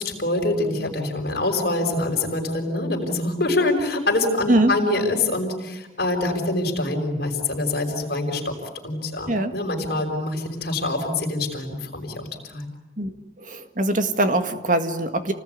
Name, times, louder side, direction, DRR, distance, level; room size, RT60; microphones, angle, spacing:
voice 1, 0.0-8.5 8.8-12.7, left 2 dB, 55° left, 2 dB, 5.1 m, -25 dB
voice 2, 13.0-15.3, right 1 dB, 45° right, 8 dB, 2.0 m, -22 dB
29.0 x 19.5 x 9.5 m, 0.99 s
head